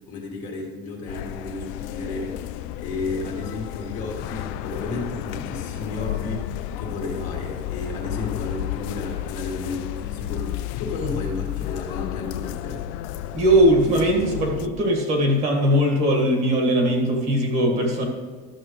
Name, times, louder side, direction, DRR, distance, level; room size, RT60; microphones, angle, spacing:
voice 1, 0.1-12.8, left 3 dB, 40° left, -1 dB, 1.9 m, -33 dB
sound 1, 1.1-14.7, left 12 dB, 65° left, 0.4 m, -32 dB
voice 2, 13.3-18.1, equal, 35° right, 1 dB, 1.7 m, -20 dB
13.0 x 7.5 x 3.2 m, 1.5 s
cardioid pair, 175°, 19 cm